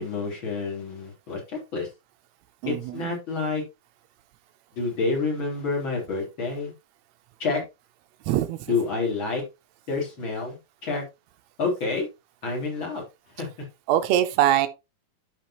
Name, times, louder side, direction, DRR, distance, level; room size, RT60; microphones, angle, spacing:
voice 1, 0.0-1.9 2.7-3.6 4.7-6.7 7.4-7.6 8.6-9.4 9.9-10.6 10.8-11.0 11.6-12.1 12.4-13.0 13.4-13.5, left 4 dB, 35° left, 4.1 m, -28 dB
voice 2, 2.6-3.0 8.3-8.6 13.9-14.7, right 12 dB, 85° right, 1.5 m, -22 dB
11.5 x 5.5 x 2.9 m
omnidirectional pair, 4.0 m